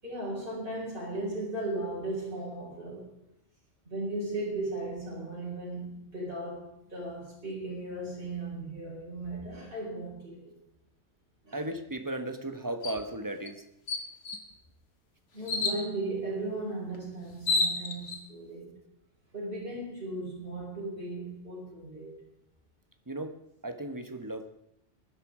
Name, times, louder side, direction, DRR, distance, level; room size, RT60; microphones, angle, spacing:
voice 1, 0.0-3.2 3.8-10.5 11.4-11.6 15.3-18.8 19.3-22.2, right 2 dB, 45° right, 5.0 m, -36 dB
voice 2, 11.5-13.6 23.1-23.3 23.6-24.4, right 1 dB, 15° right, 1.2 m, -35 dB
sound 1, 12.8-13.0 13.5-13.6 13.9-14.5 15.5-15.8 16.9-17.0 17.3-18.2, left 3 dB, 55° left, 1.6 m, -29 dB
19.0 x 11.5 x 4.9 m
omnidirectional pair, 1.3 m